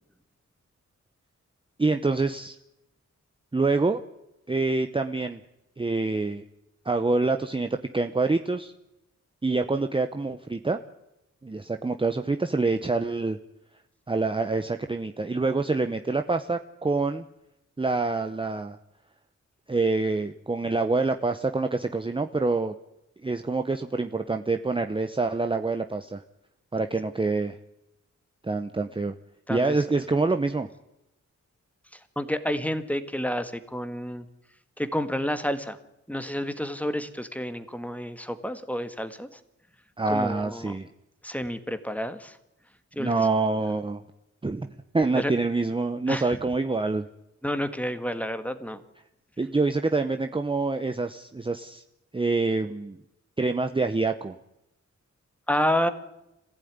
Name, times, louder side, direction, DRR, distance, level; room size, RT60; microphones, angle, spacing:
voice 1, 1.8-2.6 3.5-4.0 4.5-5.4 5.8-6.4 6.8-8.7 9.4-10.8 11.4-13.4 14.1-17.2 17.8-18.8 19.7-22.7 23.2-26.2 26.7-27.6 28.4-29.1 29.5-30.7 40.0-40.9 43.0-44.0 44.4-44.7 44.9-47.0 49.4-51.8 52.1-53.0 53.4-54.4, right 3 dB, 20° right, 7 dB, 0.8 m, -26 dB
voice 2, 32.1-34.2 34.8-35.8 36.1-39.4 40.1-40.7 41.2-42.4 42.9-43.3 45.1-45.3 46.1-46.2 47.4-48.8 55.5-55.9, equal, 5° left, 10 dB, 1.7 m, -29 dB
25.5 x 15.5 x 9.5 m, 0.92 s
wide cardioid pair, 120°, 29 cm